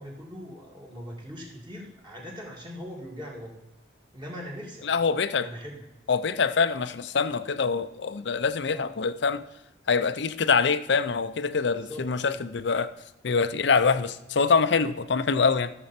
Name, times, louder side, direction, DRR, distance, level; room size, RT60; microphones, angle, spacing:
voice 1, 0.0-3.5 4.1-4.9 5.4-5.8 8.7-8.9 11.7-12.4, equal, 25° right, 2.2 m, -41 dB
voice 2, 4.8-5.5 6.1-9.4 9.9-12.9 13.2-15.7, left 5 dB, 60° left, 0.5 m, -25 dB
13.5 x 6.9 x 4.3 m
head